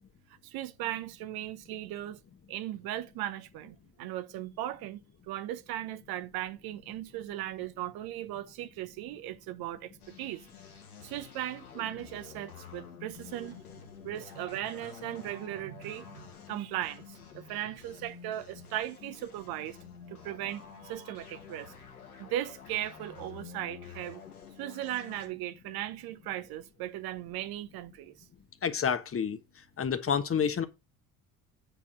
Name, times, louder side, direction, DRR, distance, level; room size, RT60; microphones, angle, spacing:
voice 1, 0.4-2.2 2.5-5.0 5.3-9.9 10.2-10.5 11.0-13.6 14.0-19.8 20.1-21.7 22.2-24.2 24.6-28.2, right 13 dB, 60° right, 1.0 m, -37 dB
sound 1, 10.0-25.3, left 7 dB, 85° left, 1.8 m, -50 dB
voice 2, 28.6-29.4 29.8-30.7, left 7 dB, 30° left, 1.3 m, -28 dB
9.1 x 4.3 x 6.0 m
figure-of-eight pair, 55°, 43 cm